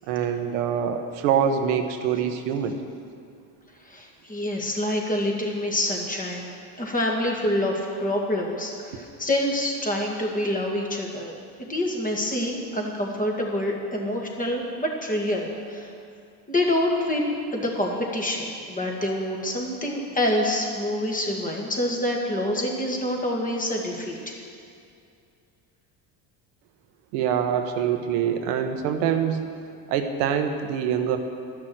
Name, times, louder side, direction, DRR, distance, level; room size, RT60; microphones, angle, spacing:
voice 1, 0.1-2.7 27.1-29.4 29.9-31.2, right 8 dB, 90° right, 7 dB, 1.1 m, -24 dB
voice 2, 3.9-6.5 6.8-15.9 16.5-24.4, left 1 dB, 20° left, -1 dB, 2.0 m, -27 dB
11.5 x 6.2 x 7.8 m, 2.4 s
supercardioid pair, 105°, 44 cm